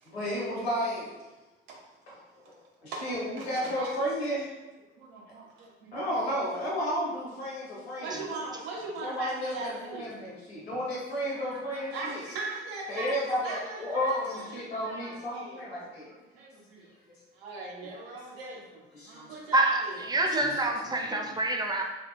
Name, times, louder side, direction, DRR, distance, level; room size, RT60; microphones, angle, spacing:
voice 1, 0.1-1.1 2.1-2.2 2.5-2.6 2.8-4.5 5.9-8.2 9.0-12.2 12.9-16.1 18.9-19.4 20.4-20.5 20.9-21.2, equal, 85° left, -5 dB, 0.8 m, -32 dB
voice 2, 3.4-4.1 5.0-6.0 8.0-10.1 11.3-15.7 16.0-16.9 17.3-20.0, right 3 dB, 75° right, -1 dB, 0.7 m, -40 dB
voice 3, 19.5-21.8, right 2 dB, 15° right, 2 dB, 0.4 m, -27 dB
3.6 x 2.2 x 2.2 m, 1.1 s
figure-of-eight pair, 55°, 31 cm